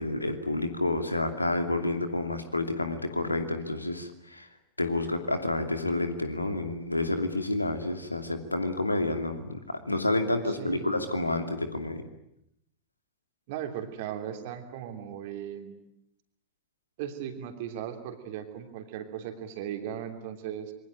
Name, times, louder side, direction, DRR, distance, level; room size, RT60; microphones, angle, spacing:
voice 1, 0.0-4.5 4.8-12.0, left 2 dB, 85° left, 8 dB, 2.6 m, -29 dB
voice 2, 10.4-11.1 13.5-15.7 17.0-20.7, right 9 dB, 50° right, 6 dB, 3.1 m, -37 dB
26.5 x 23.0 x 9.1 m, 0.79 s
figure-of-eight pair, 90°, 0 cm